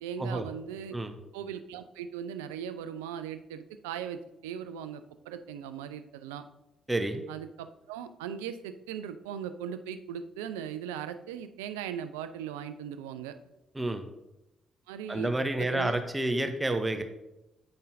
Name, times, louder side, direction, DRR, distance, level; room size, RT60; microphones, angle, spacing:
voice 1, 0.0-1.0 1.3-6.4 7.3-13.3 14.9-15.3 15.6-15.9, right 8 dB, 75° right, 11 dB, 0.3 m, -39 dB
voice 2, 6.9-7.2 13.7-14.0 15.1-17.0, right 2 dB, 15° right, 7 dB, 0.8 m, -29 dB
8.6 x 5.4 x 2.6 m, 0.93 s
figure-of-eight pair, 40°, 0 cm